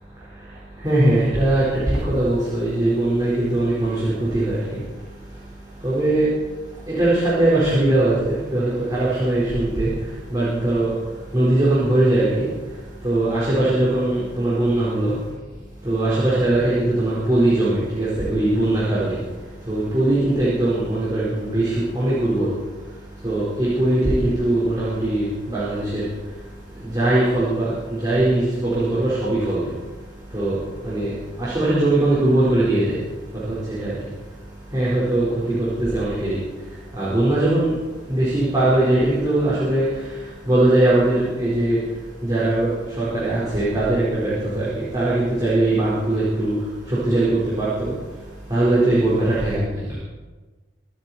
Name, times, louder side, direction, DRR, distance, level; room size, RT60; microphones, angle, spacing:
voice 1, 0.8-4.8 5.8-6.3 6.9-9.9 10.3-10.9 11.3-12.5 13.0-15.1 15.8-19.2 19.7-22.5 23.2-26.1 26.8-29.6 30.3-30.6 30.8-31.1 31.4-33.0 33.4-33.9 34.7-35.3 35.6-36.4 36.9-37.7 38.1-39.9 40.5-41.8 42.2-42.7 43.0-46.5 46.9-47.9 48.5-49.9, right 1 dB, 20° right, -9 dB, 4.3 m, -20 dB
25.0 x 8.9 x 4.3 m, 1.3 s
head